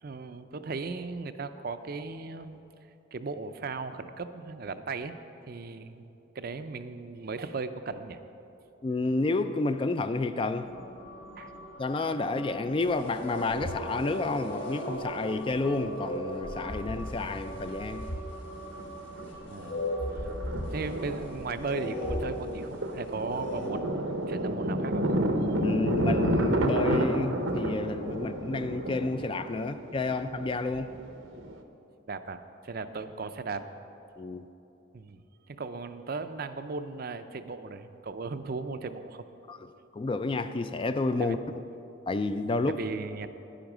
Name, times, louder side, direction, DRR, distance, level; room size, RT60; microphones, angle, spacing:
voice 1, 0.0-2.6 3.1-5.1 5.5-6.0 6.3-8.2 11.4-11.5 19.5-19.8 20.5-25.0 32.1-33.7 34.9-35.2 35.5-39.3 41.2-41.4 42.7-43.3, right 4 dB, 50° right, 10 dB, 0.5 m, -37 dB
voice 2, 8.8-10.7 11.8-18.1 25.6-30.9 34.2-34.4 39.5-39.7 39.9-41.4 42.1-42.8, left 3 dB, 25° left, 10 dB, 0.3 m, -30 dB
sound 1, 10.6-29.4, right 1 dB, 75° left, 1.8 m, -47 dB
sound 2, 12.8-18.2 18.5-18.6 19.3-22.9 23.3-23.7, left 1 dB, 60° left, 2.6 m, -36 dB
Thunder, 15.5-15.6 17.0-17.8 18.0-18.1 18.5-18.8 19.2-31.6, right 1 dB, 75° right, 0.8 m, -31 dB
10.5 x 10.0 x 6.1 m, 2.8 s
head